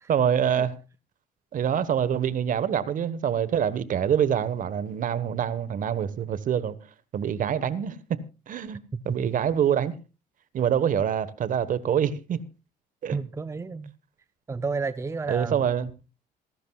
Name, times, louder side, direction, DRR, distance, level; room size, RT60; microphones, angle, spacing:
voice 1, 0.1-0.7 1.5-6.8 7.1-8.2 8.5-8.8 9.0-9.9 10.5-12.4 13.0-13.2 15.3-15.9, right 8 dB, 50° right, 1.4 m, -25 dB
voice 2, 13.1-13.9 14.5-15.7, right 4 dB, 15° right, 0.6 m, -31 dB
27.5 x 11.5 x 2.4 m
cardioid pair, 110°, 17 cm